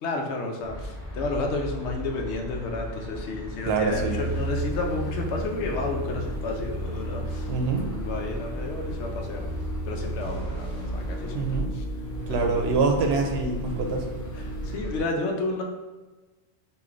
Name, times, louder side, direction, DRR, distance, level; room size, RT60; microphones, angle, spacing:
voice 1, 0.0-9.5 9.8-11.8 12.3-12.6 14.3-15.6, left 2 dB, 85° left, 2 dB, 0.9 m, -31 dB
sound 1, 0.6-15.0, equal, 5° left, 0.8 m, -37 dB
voice 2, 3.7-4.2 7.5-7.8 11.3-11.7 12.3-14.0, right 4 dB, 70° right, 2 dB, 0.8 m, -25 dB
sound 2, 3.9-14.8, right 1 dB, 65° left, 1.2 m, -34 dB
4.8 x 2.5 x 2.4 m, 1.2 s
omnidirectional pair, 1.1 m